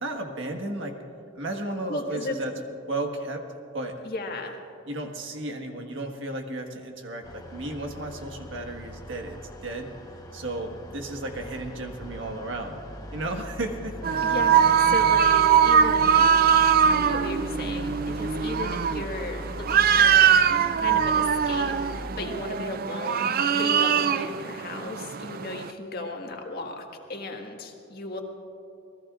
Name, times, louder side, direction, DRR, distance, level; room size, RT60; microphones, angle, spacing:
voice 1, 0.0-1.0 1.3-2.5 2.9-3.4 3.7-4.0 4.9-9.9 10.3-12.8 13.1-14.3, right 2 dB, 65° right, 3 dB, 1.6 m, -34 dB
voice 2, 1.9-2.4 4.0-4.6 14.2-16.3 16.9-28.2, left 2 dB, 50° left, 2 dB, 1.7 m, -35 dB
sound 1, 7.2-22.1, equal, 20° left, 1.0 m, -40 dB
sound 2, 14.0-25.7, right 8 dB, 45° right, 0.4 m, -22 dB
27.0 x 20.0 x 2.5 m, 2.9 s
head